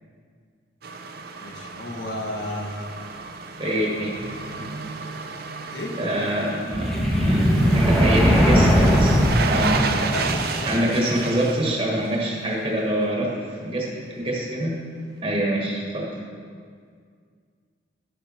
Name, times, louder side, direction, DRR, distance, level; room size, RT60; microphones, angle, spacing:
sound 1, 0.8-12.7 13.0-13.1, right 4 dB, 55° right, 0.6 m, -32 dB
voice 1, 1.4-2.9 5.7-5.9 10.1-10.8, left 1 dB, 80° left, 1 dB, 1.5 m, -32 dB
voice 2, 3.5-4.1 4.6-4.7 6.0-9.2 9.5-9.8 10.7-14.7 15.2-16.1, right 1 dB, 30° right, -3 dB, 1.4 m, -25 dB
sound 2, 6.7-10.7, equal, ahead, 1.2 m, -19 dB
11.0 x 6.8 x 4.4 m, 2.1 s
head